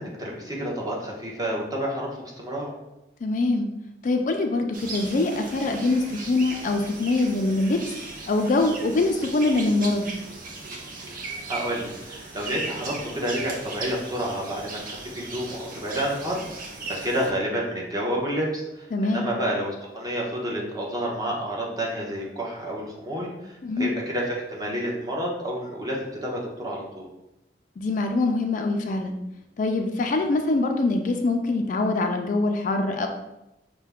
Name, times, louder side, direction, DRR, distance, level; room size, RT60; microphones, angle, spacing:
voice 1, 0.0-2.7 11.1-27.1, equal, 20° right, -3 dB, 0.9 m, -30 dB
voice 2, 3.2-3.7 4.0-7.8 8.3-10.1 18.9-19.3 23.6-23.9 27.8-29.2 29.6-33.1, left 2 dB, 45° left, 4 dB, 0.3 m, -24 dB
sound 1, 4.7-17.3, right 3 dB, 50° right, 0.7 m, -37 dB
5.5 x 2.2 x 3.5 m, 0.91 s
head